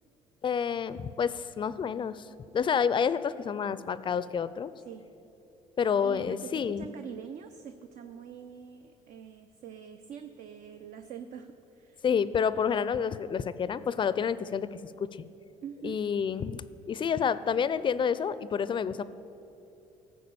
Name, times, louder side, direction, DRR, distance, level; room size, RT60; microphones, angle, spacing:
voice 1, 0.4-2.3 2.5-4.7 5.8-6.9 12.0-15.1 15.8-19.0, left 7 dB, 35° left, 15 dB, 0.4 m, -29 dB
voice 2, 6.0-6.5 6.8-11.5 11.7-12.0 15.6-16.0, right 8 dB, 60° right, 8 dB, 0.5 m, -44 dB
14.0 x 4.7 x 6.9 m, 2.8 s
supercardioid pair, 75°, 15 cm